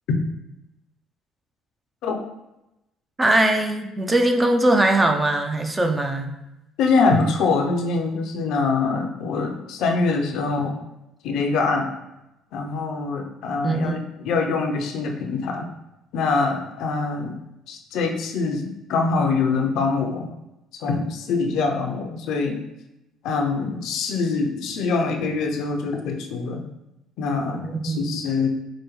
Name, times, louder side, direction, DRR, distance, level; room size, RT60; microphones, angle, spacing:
voice 1, 3.2-6.3 13.6-14.0 27.6-28.2, right 1 dB, 20° right, 4 dB, 0.5 m, -21 dB
voice 2, 6.8-10.8 11.2-11.9 12.5-15.7 16.1-17.3 17.7-20.3 20.8-22.6 23.2-26.6 27.2-28.5, left 4 dB, 70° left, 3 dB, 0.5 m, -24 dB
4.9 x 2.2 x 3.1 m, 0.91 s
supercardioid pair, 65°, 0 cm